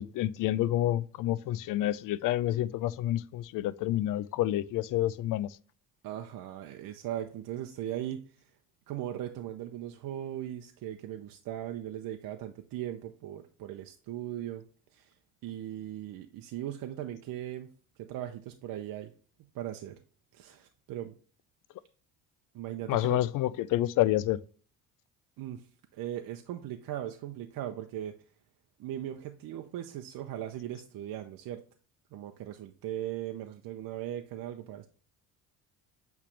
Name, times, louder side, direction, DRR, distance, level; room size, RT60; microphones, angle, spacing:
voice 1, 0.0-5.6 22.9-24.4, left 14 dB, 55° left, 0.5 m, -28 dB
voice 2, 6.0-8.5 8.9-14.6 14.9-15.1 15.4-17.7 18.0-19.1 19.5-20.0 20.3-21.1 22.5-23.2 25.4-28.1 28.8-31.6 32.1-34.9, right 12 dB, 60° right, 0.7 m, -38 dB
8.3 x 3.4 x 3.3 m
supercardioid pair, 75°, 38 cm